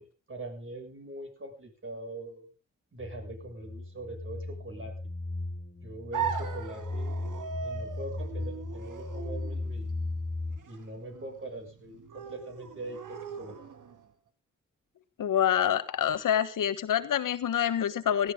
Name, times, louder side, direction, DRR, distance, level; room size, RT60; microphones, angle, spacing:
voice 1, 0.0-2.5 2.9-5.1 5.8-7.3 7.6-9.9 10.7-13.6, right 2 dB, 40° right, 4 dB, 6.4 m, -42 dB
sound 1, 3.0-10.6, left 2 dB, 25° left, 3.2 m, -36 dB
sound 2, 6.1-14.1, right 7 dB, 70° right, 2.4 m, -39 dB
voice 2, 15.2-18.3, left 9 dB, 75° left, 12 dB, 1.4 m, -26 dB
18.0 x 13.5 x 3.8 m, 0.31 s
supercardioid pair, 50°, 33 cm